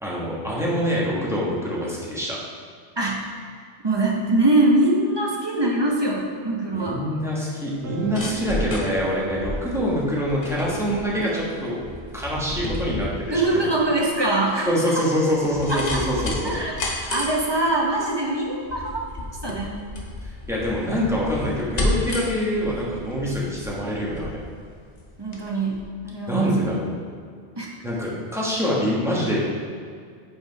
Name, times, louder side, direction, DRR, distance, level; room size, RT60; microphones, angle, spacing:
voice 1, 0.0-2.4 6.7-11.8 12.1-13.7 14.7-16.5 20.5-24.4 26.3-26.9 27.8-29.4, equal, 5° right, -6 dB, 1.2 m, -25 dB
voice 2, 3.8-7.0 13.3-14.7 15.7-16.0 16.4-16.8 17.1-18.9 19.4-19.7 25.2-26.7 27.6-27.7, right 2 dB, 25° right, -2 dB, 0.8 m, -23 dB
sound 1, 6.6-14.1, right 4 dB, 80° right, 0.9 m, -37 dB
sound 2, 7.8-25.4 25.7-25.8, left 1 dB, 40° left, 0.9 m, -32 dB
5.5 x 5.0 x 4.6 m, 2.1 s
omnidirectional pair, 1.1 m